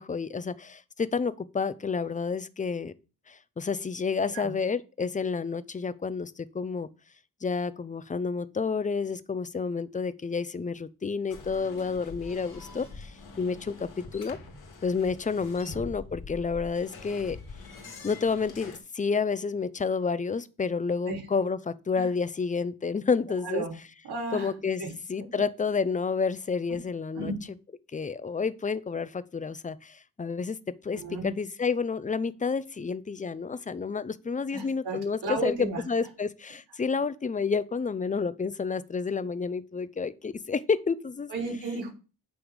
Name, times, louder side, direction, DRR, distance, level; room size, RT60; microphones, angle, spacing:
voice 1, 0.0-2.9 3.3-6.9 7.4-14.4 14.8-17.4 18.0-23.6 24.3-24.8 25.1-27.3 27.9-35.5 35.9-41.3, left 5 dB, 20° left, 0.5 m, -30 dB
sound 1, 11.3-18.8, left 3 dB, 65° left, 2.3 m, -44 dB
voice 2, 24.0-24.5 24.8-24.9 26.7-26.8 27.2-27.4 31.0-31.3 34.5-35.8 41.3-41.9, right 3 dB, 85° right, 3.8 m, -33 dB
9.0 x 3.5 x 6.3 m
cardioid pair, 105°, 39 cm